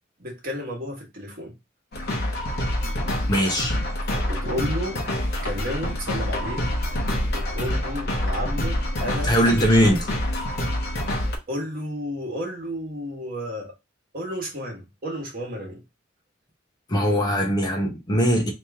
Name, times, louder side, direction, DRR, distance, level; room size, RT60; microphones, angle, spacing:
voice 1, 0.2-1.5 4.3-5.0 5.4-6.7 7.3-9.4 11.5-13.7 14.1-15.8, equal, 50° right, 1.5 m, -32 dB
sound 1, 1.9-11.4, left 1 dB, 55° left, 0.9 m, -26 dB
voice 2, 3.3-3.8 9.2-10.1 16.9-18.5, equal, 20° left, 0.8 m, -20 dB
3.1 x 3.0 x 3.4 m
head